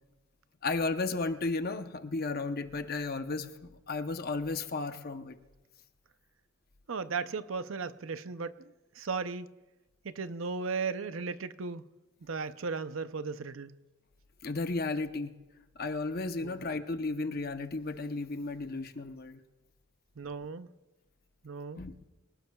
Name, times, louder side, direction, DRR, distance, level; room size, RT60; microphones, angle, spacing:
voice 1, 0.6-5.4 14.4-15.3 15.8-19.4 21.8-21.9, left 3 dB, 45° left, 0.8 m, -34 dB
voice 2, 6.9-8.5 9.0-9.5 10.0-11.8 12.3-13.7 16.4-16.6 20.2-20.7 21.4-21.8, right 4 dB, 65° right, 0.6 m, -36 dB
25.0 x 18.5 x 2.4 m
head